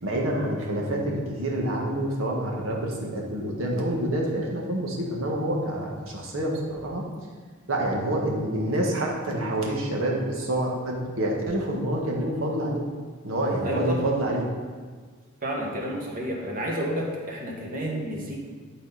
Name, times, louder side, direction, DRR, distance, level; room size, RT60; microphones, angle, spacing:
voice 1, 0.0-7.0 7.7-12.8 13.2-14.5, right 1 dB, 85° right, -1 dB, 1.6 m, -27 dB
voice 2, 13.6-14.1 15.4-18.4, equal, 45° right, -2 dB, 1.6 m, -30 dB
11.0 x 4.2 x 4.1 m, 1.5 s
head